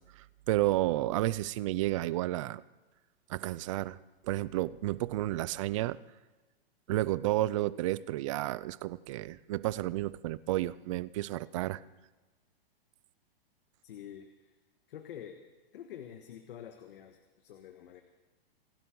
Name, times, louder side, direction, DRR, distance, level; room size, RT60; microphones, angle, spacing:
voice 1, 0.2-2.6 3.3-4.0 4.2-6.0 6.9-11.8, right 16 dB, 35° right, 19 dB, 0.4 m, -31 dB
voice 2, 13.8-14.6 14.9-15.4 15.7-18.0, left 9 dB, 60° left, 6 dB, 1.5 m, -47 dB
26.5 x 12.5 x 3.9 m, 1.2 s
hypercardioid pair, 150°, 30 cm